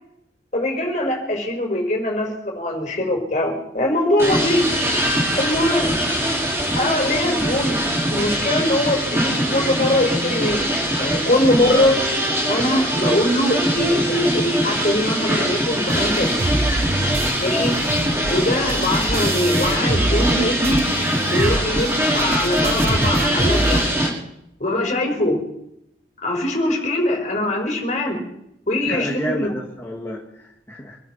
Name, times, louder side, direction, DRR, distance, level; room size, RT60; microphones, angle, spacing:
voice 1, 0.5-4.7 5.4-6.0 6.7-7.8 8.1-10.7 11.0-12.0 12.5-16.5 17.4-17.7 18.3-20.8 21.3-23.9 24.6-25.4 26.2-28.2 28.7-29.5, left 1 dB, 40° left, 2 dB, 4.7 m, -22 dB
sound 1, 4.2-24.1, equal, 15° right, 5.2 m, -22 dB
sound 2, 15.9-20.4 20.6-23.9, right 1 dB, 35° right, 1.2 m, -26 dB
voice 2, 17.4-17.8 28.9-31.0, equal, 15° left, -3 dB, 2.4 m, -29 dB
26.0 x 12.5 x 4.5 m, 0.78 s
head